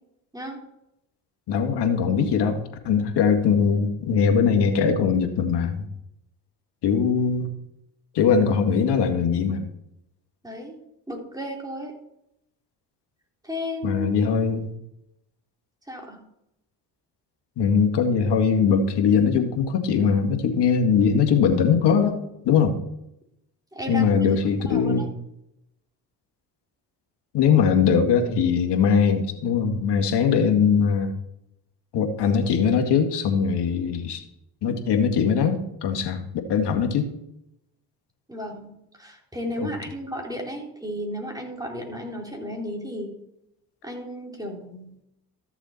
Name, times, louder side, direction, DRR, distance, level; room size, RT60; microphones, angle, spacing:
voice 1, 1.5-5.8 6.8-7.5 8.1-9.7 13.8-14.7 17.6-22.2 22.4-22.7 23.9-25.1 27.3-31.1 31.9-34.2 34.6-36.2 36.5-37.1 39.6-39.7, left 6 dB, 65° left, 5 dB, 2.0 m, -21 dB
voice 2, 10.4-10.8 11.1-11.9 13.4-14.3 15.9-16.2 23.7-25.0 38.3-38.7 39.0-43.1 43.8-45.0, equal, 10° right, 0 dB, 3.6 m, -34 dB
14.0 x 7.0 x 4.4 m, 0.81 s
supercardioid pair, 65°, 44 cm